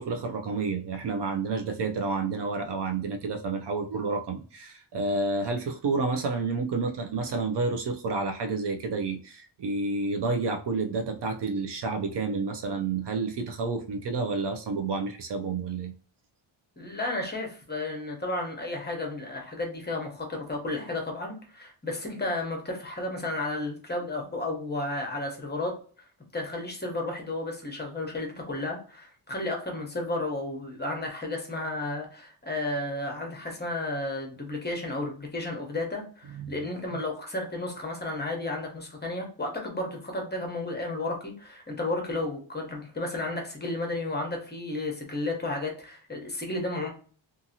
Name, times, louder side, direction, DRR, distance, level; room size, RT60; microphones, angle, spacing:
voice 1, 0.0-15.9 36.3-36.7, right 3 dB, 55° right, 5 dB, 0.5 m, -30 dB
voice 2, 16.8-25.7 26.3-46.9, left 2 dB, 20° left, 1 dB, 0.8 m, -33 dB
2.6 x 2.5 x 2.7 m, 0.40 s
wide cardioid pair, 120°, 50 cm